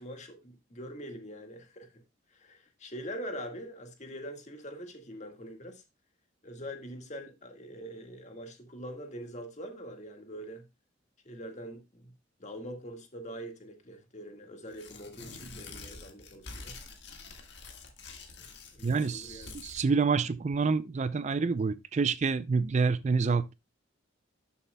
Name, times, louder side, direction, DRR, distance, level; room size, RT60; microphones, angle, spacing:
voice 1, 0.0-2.0 2.3-5.8 6.4-10.6 11.3-12.1 12.4-16.8 18.7-19.5 21.3-21.5, equal, 40° left, 1.7 m, -43 dB
Tearing, 14.7-19.8, left 3 dB, 60° left, 1.7 m, -47 dB
voice 2, 18.8-23.5, right 4 dB, 35° right, 0.4 m, -28 dB
12.5 x 7.0 x 2.2 m
head